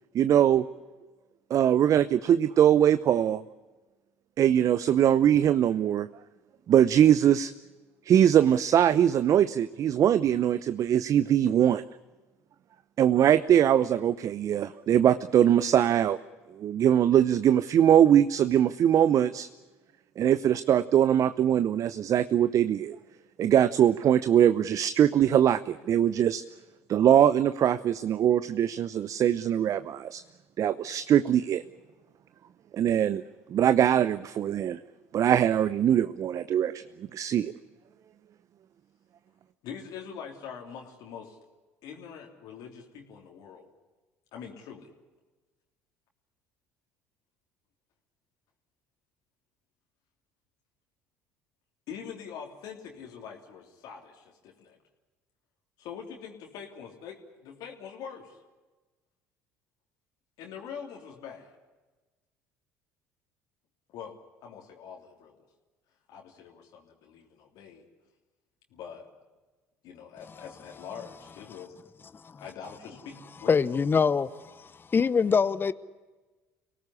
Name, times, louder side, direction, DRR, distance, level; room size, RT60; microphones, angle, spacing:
voice 1, 0.1-0.6 1.5-3.4 4.4-6.1 6.7-7.5 8.0-11.8 13.0-16.2 16.5-19.5 20.2-23.0 23.4-26.4 26.9-30.2 30.6-31.6 32.7-33.2 33.5-34.8 35.1-37.5, right 10 dB, 50° right, 0.8 m, -22 dB
voice 2, 39.6-41.4 41.8-43.7 44.3-44.9 51.9-54.8 55.8-58.4 60.4-61.6 63.9-65.4 66.1-67.8 68.7-69.1 69.8-71.7 72.4-73.5, left 7 dB, 65° left, 3.4 m, -44 dB
voice 3, 73.5-75.7, left 5 dB, 30° left, 0.9 m, -24 dB
25.5 x 18.0 x 9.9 m
hypercardioid pair, 65°, 7 cm